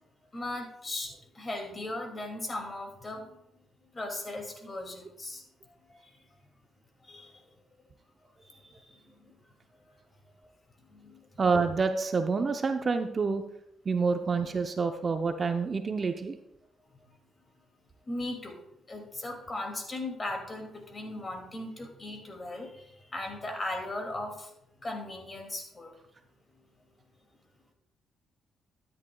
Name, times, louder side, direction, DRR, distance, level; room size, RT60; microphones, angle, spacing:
voice 1, 0.3-3.2 3.9-5.4 5.9-6.1 7.1-7.4 8.4-8.6 8.9-9.0 9.9-10.0 10.4-10.5 10.9-11.2 18.1-18.6 18.9-24.5 24.8-26.0, left 2 dB, 30° left, 3 dB, 2.3 m, -38 dB
voice 2, 11.4-13.4 13.9-16.4, right 4 dB, 35° right, 7 dB, 0.7 m, -27 dB
13.0 x 10.0 x 2.3 m, 0.79 s
cardioid pair, 90°, 0 cm